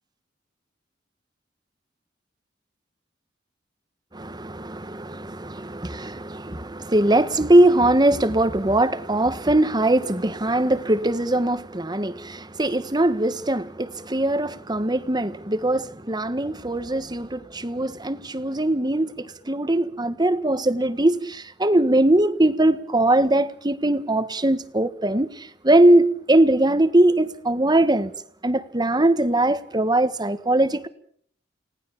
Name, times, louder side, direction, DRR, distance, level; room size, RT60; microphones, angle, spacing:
voice 1, 4.1-28.1 28.4-30.9, right 1 dB, 25° right, 1.5 m, -21 dB
30.0 x 18.5 x 7.3 m
head